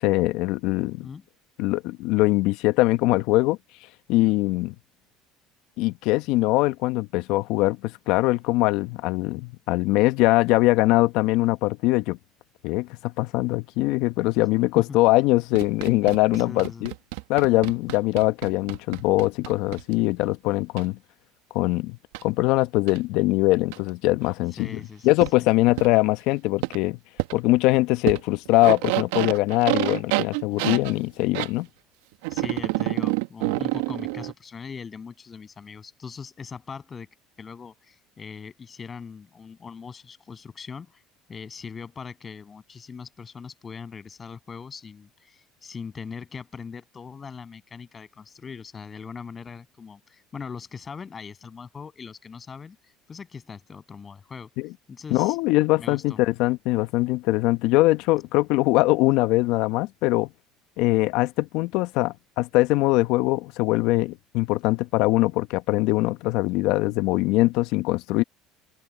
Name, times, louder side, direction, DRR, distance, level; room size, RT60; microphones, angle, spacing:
voice 1, 0.0-1.1 1.6-3.6 4.1-4.7 5.8-12.2 12.6-16.9 17.3-21.0 21.5-22.0 22.2-27.0 27.3-31.7 54.6-54.7 55.1-60.3 60.8-68.2, left 20 dB, 70° left, 1.0 m, -22 dB
sound 1, 15.6-19.9 20.8-20.9 22.1-22.2 22.9-23.0 23.7-23.8 25.2-25.3 25.8-25.9 26.6-26.8 27.2-27.3 28.1-28.2 28.5-31.5 32.2-34.3, right 22 dB, 80° right, 1.2 m, -27 dB
voice 2, 16.3-16.9 24.6-25.1 25.4-25.5 32.3-37.1 37.4-41.0 41.3-52.8 53.1-54.5 54.9-55.4 55.8-56.2, left 6 dB, 30° left, 6.8 m, -40 dB
open air
supercardioid pair, 85°, 0 cm